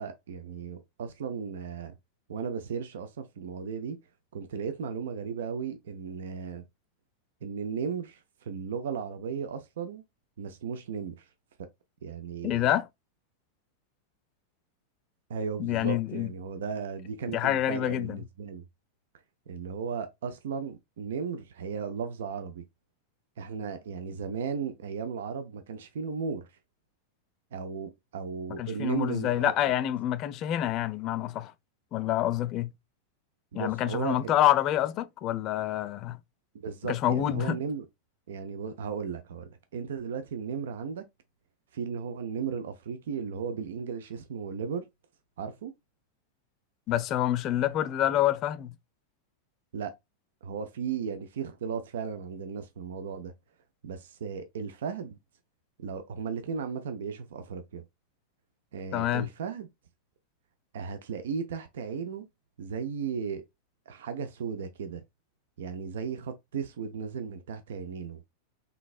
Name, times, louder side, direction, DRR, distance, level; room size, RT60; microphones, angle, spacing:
voice 1, 0.0-1.9 2.3-4.0 4.3-6.7 7.4-10.0 10.4-11.2 12.0-12.7 15.3-18.6 19.5-22.6 23.4-26.5 27.5-29.5 33.5-34.3 36.5-37.9 38.3-41.0 41.7-44.9 45.4-45.7 49.7-49.9 50.4-53.3 53.8-55.2 55.8-57.8 58.7-59.7 60.7-62.3 62.6-63.4 63.9-65.0 65.6-68.2, right 6 dB, 60° right, 0.5 m, -35 dB
voice 2, 12.4-12.9 15.6-16.3 17.3-18.2 28.5-31.5 31.9-32.7 33.5-36.2 36.9-37.6 46.9-48.8 58.9-59.3, left 12 dB, 35° left, 0.3 m, -27 dB
3.9 x 3.4 x 2.3 m
figure-of-eight pair, 90°, 0 cm